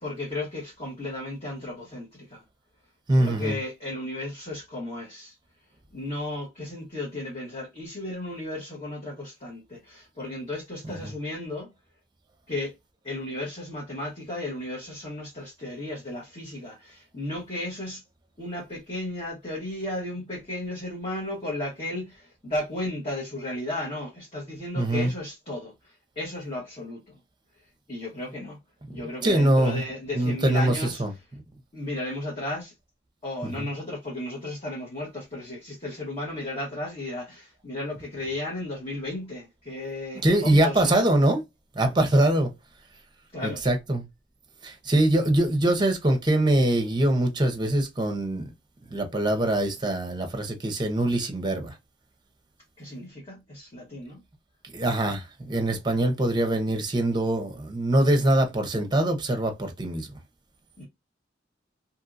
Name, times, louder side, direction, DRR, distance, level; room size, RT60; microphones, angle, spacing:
voice 1, 0.0-2.4 3.1-5.3 5.9-11.7 12.5-12.7 13.0-18.0 18.4-27.2 27.9-28.6 28.9-31.0 31.7-32.7 33.2-41.1 43.3-43.6 52.8-54.2 60.8-60.9, left 1 dB, 30° left, 1.1 m, -34 dB
voice 2, 3.1-3.6 11.0-11.1 24.8-25.1 29.2-29.8 30.1-31.1 33.4-33.7 40.1-41.4 41.7-42.5 43.4-44.1 44.6-48.5 48.9-51.7 54.6-60.1, right 1 dB, 25° right, 0.7 m, -23 dB
2.8 x 2.7 x 2.5 m
head